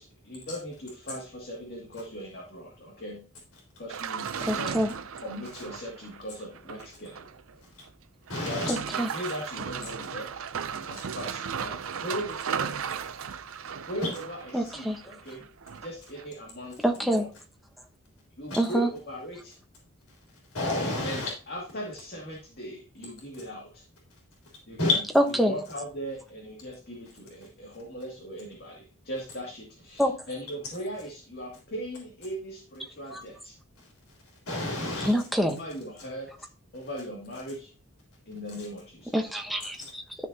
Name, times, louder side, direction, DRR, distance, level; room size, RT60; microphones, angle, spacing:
voice 1, 0.0-3.2 3.8-4.7 5.2-7.3 8.4-10.4 10.7-13.2 13.9-15.5 15.8-17.3 18.4-19.5 21.0-23.8 24.7-25.0 25.4-33.5 35.4-36.5 36.7-37.7 38.3-39.4, equal, 45° left, 2.3 m, -39 dB
sound 1, 3.9-7.5 7.8-7.9 8.3-15.9 16.2-16.3, right 7 dB, 70° right, 0.5 m, -36 dB
voice 2, 4.4-4.9 8.7-9.1 14.5-15.0 16.8-17.2 18.6-18.9 25.1-25.5 30.0-30.1 33.1-33.2 35.0-35.6 39.1-40.3, equal, ahead, 1.0 m, -26 dB
voice 3, 8.3-8.7 18.5-18.6 20.5-21.3 24.8-24.9 34.5-35.1, left 2 dB, 75° left, 3.7 m, -28 dB
12.5 x 6.6 x 2.8 m
head